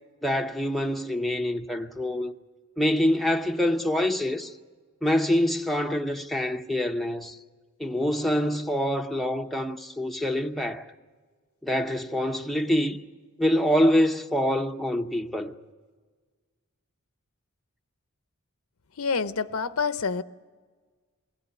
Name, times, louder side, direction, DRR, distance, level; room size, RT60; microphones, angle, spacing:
voice 1, 0.2-2.3 2.8-4.5 5.0-7.4 7.8-10.9 11.6-13.0 13.4-15.5, left 1 dB, ahead, 0.8 m, -25 dB
voice 2, 19.0-20.2, left 5 dB, 80° left, 0.7 m, -27 dB
22.0 x 18.5 x 8.4 m
head